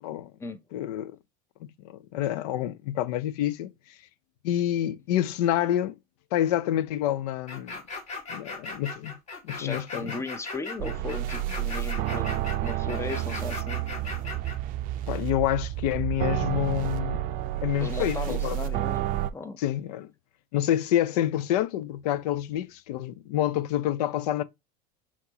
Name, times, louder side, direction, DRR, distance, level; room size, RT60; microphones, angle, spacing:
voice 1, 0.0-0.3 0.7-1.2 1.8-3.7 4.4-5.9 6.3-7.7 8.3-9.1 9.4-10.1 15.1-17.2 17.6-18.6 19.6-20.1 20.5-24.4, left 12 dB, 80° left, 0.5 m, -27 dB
sound 1, 7.5-14.6, left 3 dB, 35° left, 1.8 m, -38 dB
voice 2, 9.6-13.9 17.8-19.1 19.3-19.6, left 4 dB, 15° left, 0.6 m, -37 dB
sound 2, 10.8-19.3, right 13 dB, 45° right, 0.5 m, -30 dB
5.8 x 3.0 x 2.8 m
supercardioid pair, 125°, 20 cm